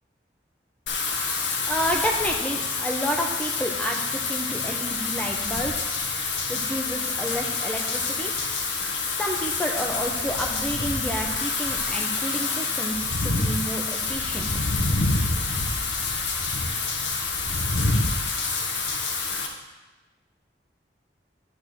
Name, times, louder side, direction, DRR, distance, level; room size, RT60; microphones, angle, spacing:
Wind / Rain, 0.9-19.5, left 3 dB, 85° left, 1.1 m, -27 dB
voice 1, 1.7-6.0 6.5-8.3 9.2-14.5, equal, 5° left, 1 dB, 0.8 m, -30 dB
10.5 x 3.7 x 6.2 m, 1.2 s
head